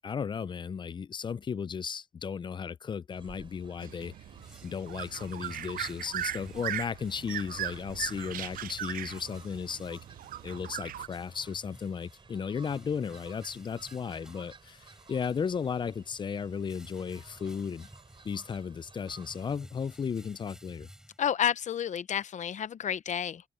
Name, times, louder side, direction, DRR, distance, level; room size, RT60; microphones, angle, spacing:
voice 1, 0.0-4.1 4.6-10.0 10.4-17.9 18.2-20.9, left 6 dB, 35° left, 0.4 m, -35 dB
Fowl, 3.1-19.6, right 4 dB, 35° right, 4.3 m, -56 dB
sound 1, 3.8-11.1, right 12 dB, 75° right, 0.4 m, -39 dB
sound 2, 4.1-21.7, equal, 5° right, 7.1 m, -55 dB
voice 2, 21.2-23.4, left 9 dB, 55° left, 0.7 m, -30 dB
open air
wide cardioid pair, 135°, 15 cm